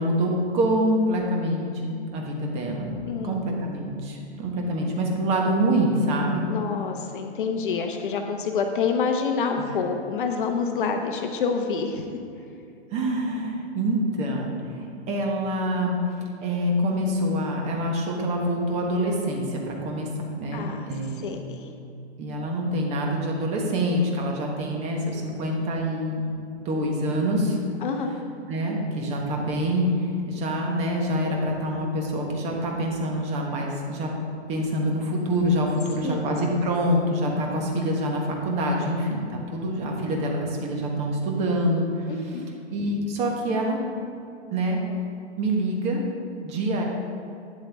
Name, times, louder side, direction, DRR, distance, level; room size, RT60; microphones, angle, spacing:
voice 1, 0.0-3.0 3.2-6.4 12.9-16.0 16.4-20.1 20.3-21.3 22.2-26.3 26.6-27.6 28.5-34.1 34.5-42.1 42.7-43.8 44.5-44.8 45.4-46.0 46.4-46.8, equal, 20° right, 0 dB, 1.2 m, -26 dB
voice 2, 3.1-3.6 6.5-12.1 20.5-20.9 21.2-21.7 27.8-28.1 36.0-36.2 42.1-42.5, left 5 dB, 50° left, 4 dB, 0.9 m, -27 dB
12.0 x 9.5 x 3.5 m, 2.5 s
hypercardioid pair, 160°, 34 cm